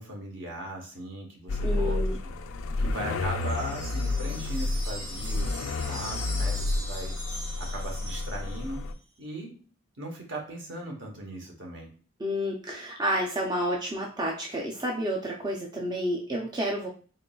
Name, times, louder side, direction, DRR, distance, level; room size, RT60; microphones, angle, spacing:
voice 1, 0.0-2.0 2.8-7.2 7.6-8.8 9.2-9.6 10.0-11.9, right 1 dB, 60° right, 1 dB, 1.0 m, -38 dB
sound 1, 1.5-8.9, left 2 dB, 85° left, 0.4 m, -30 dB
voice 2, 1.6-2.2 12.2-16.9, equal, 20° right, -1 dB, 0.4 m, -30 dB
sound 2, 3.4-8.9, right 1 dB, 80° right, 1.3 m, -41 dB
3.7 x 3.7 x 2.3 m, 0.39 s
head